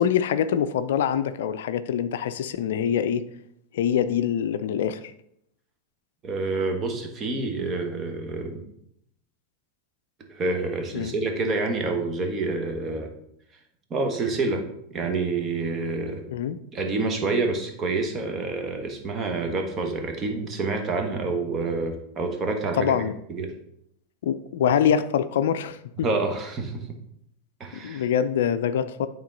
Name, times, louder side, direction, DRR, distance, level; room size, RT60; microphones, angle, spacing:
voice 1, 0.0-3.2 3.7-5.1 10.9-11.1 16.3-16.6 22.7-23.1 24.2-26.1 27.7-29.1, left 8 dB, 70° left, 12 dB, 0.4 m, -24 dB
voice 2, 6.2-8.6 10.3-13.1 13.9-14.6 14.9-16.2 16.7-23.1 23.3-23.5 26.0-26.8 27.6-28.1, right 3 dB, 30° right, 4 dB, 1.3 m, -28 dB
8.7 x 3.6 x 3.8 m, 0.74 s
hypercardioid pair, 90°, 0 cm